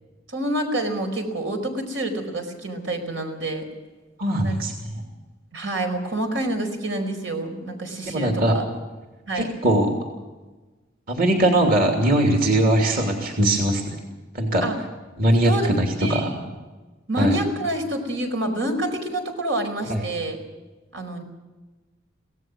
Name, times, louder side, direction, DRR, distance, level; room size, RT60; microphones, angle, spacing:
voice 1, 0.3-3.7 4.4-4.6 5.5-8.6 9.3-9.5 14.6-14.8 15.4-15.7 16.0-16.5 17.1-20.4 20.9-21.2, right 1 dB, 85° right, 5 dB, 4.9 m, -27 dB
voice 2, 4.2-5.0 8.1-8.5 9.3-9.9 11.1-14.0 14.3-14.7 15.2-16.3 17.2-17.3 19.9-20.0, right 1 dB, 50° right, 2 dB, 2.9 m, -20 dB
25.0 x 17.5 x 6.3 m, 1.2 s
head